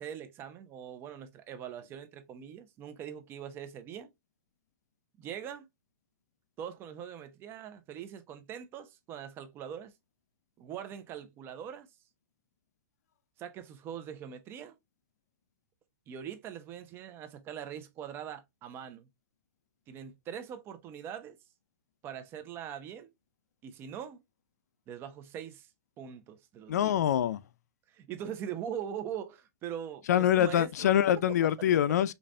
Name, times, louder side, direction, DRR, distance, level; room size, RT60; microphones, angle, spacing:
voice 1, 0.0-4.1 5.2-5.7 6.6-9.9 10.6-11.9 13.4-14.8 16.1-19.1 19.9-21.4 22.0-23.1 23.6-24.2 24.9-25.7 26.0-27.0 27.9-31.0, right 9 dB, 25° right, 0.7 m, -42 dB
voice 2, 26.7-27.4 30.1-32.1, left 10 dB, 75° left, 0.4 m, -25 dB
5.3 x 2.4 x 2.4 m
hypercardioid pair, 140°, 9 cm